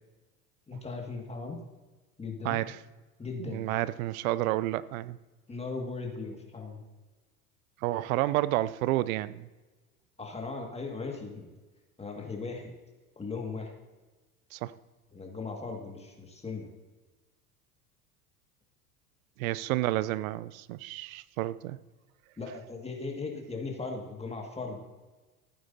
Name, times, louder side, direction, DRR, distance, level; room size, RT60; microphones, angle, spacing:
voice 1, 0.7-1.6 2.2-2.6 3.2-3.7 5.5-6.8 10.2-11.5 12.0-12.7 13.2-13.7 15.1-16.7 22.4-24.8, left 4 dB, 15° left, 1 dB, 2.1 m, -38 dB
voice 2, 2.4-2.8 3.4-5.2 7.8-9.5 14.5-14.7 19.4-21.8, right 16 dB, 65° right, 18 dB, 0.6 m, -30 dB
15.0 x 9.1 x 2.8 m, 1.2 s
hypercardioid pair, 80°, 45 cm